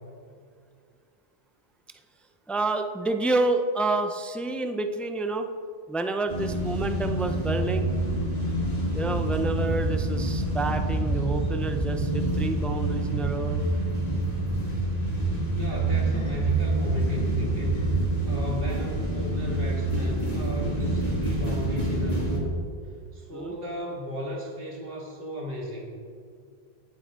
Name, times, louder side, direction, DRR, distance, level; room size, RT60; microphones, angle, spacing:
voice 1, 2.5-5.5 5.9-7.9 8.9-13.6 23.3-23.5, right 2 dB, ahead, 6 dB, 0.4 m, -29 dB
sound 1, 6.3-22.4, right 2 dB, 40° left, 2.7 m, -27 dB
voice 2, 15.5-22.6 23.1-25.9, equal, 60° right, -2 dB, 2.4 m, -36 dB
18.0 x 7.9 x 3.7 m, 2.2 s
omnidirectional pair, 1.1 m